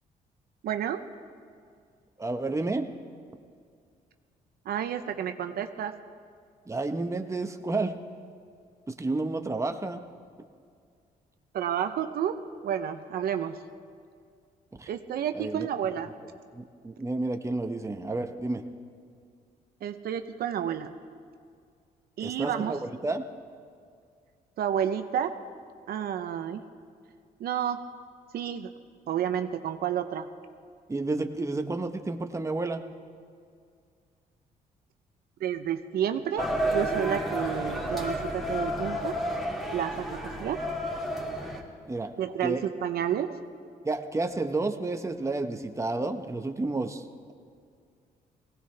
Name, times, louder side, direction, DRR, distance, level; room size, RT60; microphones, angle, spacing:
voice 1, 0.6-1.0 4.7-6.0 11.5-13.6 14.9-16.1 19.8-20.9 22.2-22.8 24.6-25.4 25.9-26.6 27.4-27.8 28.3-28.7 29.1-30.3 35.4-39.2 39.7-40.6 42.2-43.4, right 9 dB, 70° right, 8 dB, 0.7 m, -30 dB
voice 2, 2.2-2.9 6.7-8.0 8.9-10.0 14.8-14.9 15.3-15.7 16.5-18.6 22.2-22.8 23.0-23.2 30.9-32.8 41.9-42.1 42.4-42.6 43.8-47.3, right 2 dB, 20° right, 6 dB, 1.1 m, -31 dB
sound 1, 36.4-41.6, equal, ahead, 2.7 m, -31 dB
19.5 x 17.5 x 3.4 m, 2.2 s
cardioid pair, 75°, 16 cm